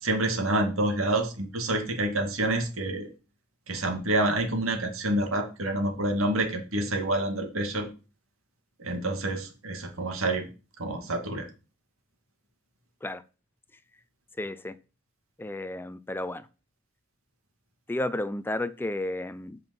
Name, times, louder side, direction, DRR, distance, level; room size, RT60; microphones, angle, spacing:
voice 1, 0.0-3.1 3.7-7.9 8.8-10.5 10.8-11.5, right 1 dB, 85° right, 3 dB, 2.2 m, -28 dB
voice 2, 14.4-14.7 15.4-16.5 17.9-19.6, left 1 dB, 10° left, 14 dB, 0.4 m, -32 dB
8.1 x 5.4 x 5.4 m, 0.33 s
head